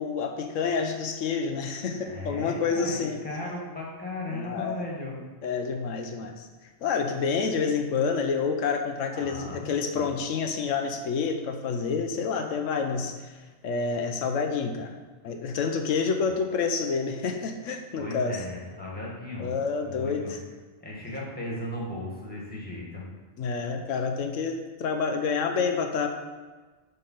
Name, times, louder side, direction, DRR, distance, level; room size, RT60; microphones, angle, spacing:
voice 1, 0.0-3.2 4.3-4.8 5.4-6.5 6.8-13.3 13.6-14.9 15.2-18.4 19.4-20.4 23.4-26.1, left 5 dB, 85° left, 5 dB, 1.0 m, -28 dB
voice 2, 2.0-5.2 9.1-10.1 18.0-19.5 19.8-20.3 20.8-23.0, left 1 dB, 5° left, -4 dB, 1.7 m, -36 dB
5.5 x 5.2 x 5.6 m, 1.3 s
omnidirectional pair, 1.3 m